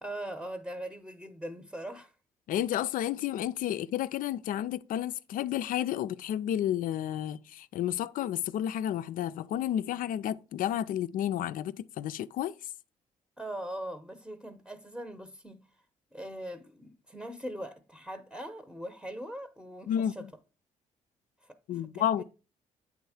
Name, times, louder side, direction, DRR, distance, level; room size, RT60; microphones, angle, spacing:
voice 1, 0.0-2.1 13.4-15.6 16.1-20.3 21.4-22.2, right 1 dB, ahead, 0.8 m, -41 dB
voice 2, 2.5-12.5 19.9-20.3 21.7-22.2, left 11 dB, 70° left, 0.4 m, -31 dB
8.4 x 3.6 x 4.8 m
supercardioid pair, 65°, 15 cm